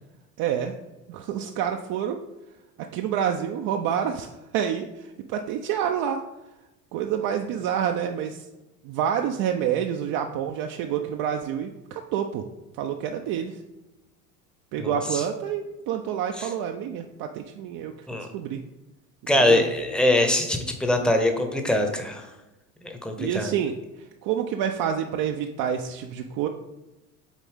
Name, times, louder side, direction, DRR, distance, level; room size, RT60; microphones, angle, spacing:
voice 1, 0.4-0.7 1.1-2.2 2.9-4.3 4.5-6.2 6.9-8.4 8.8-12.4 12.8-13.6 14.7-17.9 18.3-18.6 19.3-19.6 23.2-23.7 24.2-26.5, right 9 dB, 50° right, 4 dB, 0.6 m, -28 dB
voice 2, 14.8-15.2 16.4-16.5 18.1-18.3 19.3-22.3 22.8-23.5, left 1 dB, ahead, 4 dB, 0.9 m, -23 dB
7.2 x 4.1 x 3.6 m, 1.0 s
hypercardioid pair, 75°, 44 cm